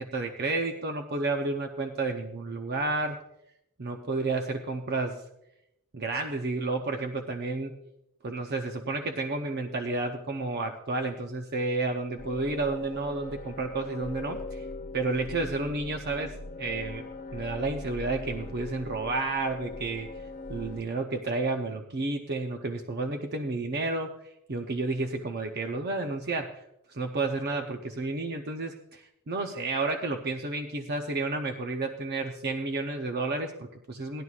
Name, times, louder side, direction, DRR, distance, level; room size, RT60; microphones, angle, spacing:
voice 1, 0.0-3.2 3.8-5.2 5.9-7.8 8.2-14.7 14.9-20.1 20.5-26.6 26.9-34.2, right 3 dB, 50° right, 5 dB, 0.7 m, -31 dB
sound 1, 12.2-20.8, left 2 dB, 35° left, 0.5 m, -40 dB
18.0 x 11.0 x 2.4 m, 0.86 s
head